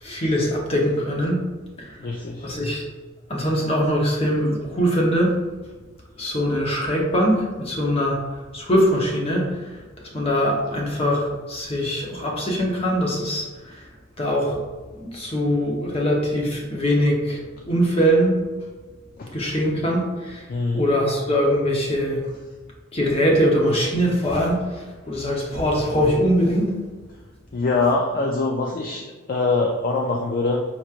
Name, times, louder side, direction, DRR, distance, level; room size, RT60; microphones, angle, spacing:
voice 1, 0.0-1.5 1.8-2.0 2.4-2.8 3.3-5.4 6.2-8.3 8.5-9.8 10.1-13.8 14.2-14.7 15.0-18.4 19.3-20.5 20.7-22.3 22.9-26.7, equal, 30° left, -1 dB, 0.8 m, -22 dB
voice 2, 2.0-2.5 19.2-19.3 20.5-20.9 27.5-30.6, left 3 dB, 45° left, 0 dB, 0.3 m, -23 dB
5.6 x 3.1 x 2.4 m, 1.3 s
head